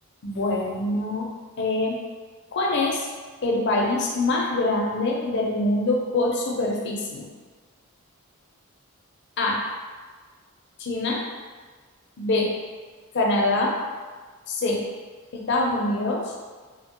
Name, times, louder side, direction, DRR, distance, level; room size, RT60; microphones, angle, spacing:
voice 1, 0.2-1.3 1.6-2.0 2.5-3.1 3.4-7.3 9.4-9.6 10.8-11.2 12.2-12.5 13.1-13.8 14.5-14.9 15.3-16.3, left 2 dB, 50° left, -1 dB, 0.4 m, -24 dB
2.8 x 2.1 x 2.8 m, 1.5 s
head